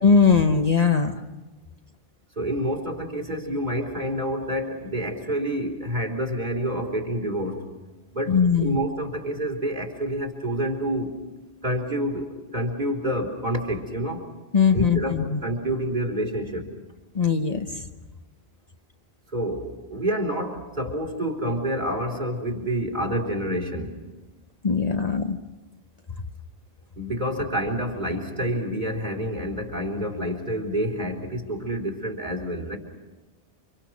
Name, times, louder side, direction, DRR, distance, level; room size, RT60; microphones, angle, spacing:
voice 1, 0.0-1.2 8.3-8.8 14.5-15.4 17.1-17.8 24.6-25.4, left 5 dB, 40° left, 5 dB, 1.1 m, -20 dB
voice 2, 2.4-7.7 8.1-11.2 11.6-14.3 14.7-16.7 19.3-24.0 27.0-32.8, equal, 45° right, 1 dB, 3.8 m, -28 dB
29.5 x 26.0 x 6.3 m, 1.2 s
omnidirectional pair, 1.1 m